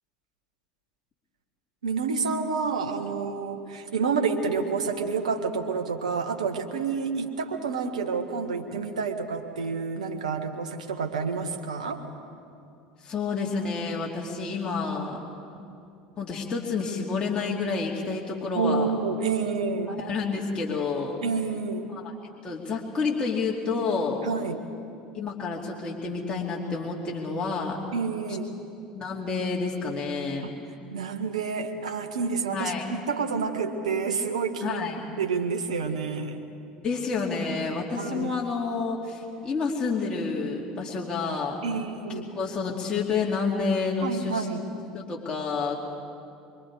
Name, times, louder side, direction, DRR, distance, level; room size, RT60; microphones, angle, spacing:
voice 1, 1.8-12.0 18.5-19.9 21.2-21.9 24.2-24.6 27.9-28.5 30.9-34.8 35.2-36.4 37.9-38.3 41.6-42.3 44.0-44.6, right 5 dB, 80° right, 5 dB, 1.6 m, -29 dB
voice 2, 13.0-15.2 16.2-18.9 19.9-21.2 21.9-22.1 22.4-24.2 25.1-27.8 28.9-30.5 32.5-32.9 34.6-35.1 36.8-41.6 42.4-44.5 44.7-45.7, left 4 dB, 25° left, -3 dB, 2.8 m, -29 dB
24.0 x 24.0 x 4.9 m, 2.6 s
hypercardioid pair, 75°, 4 cm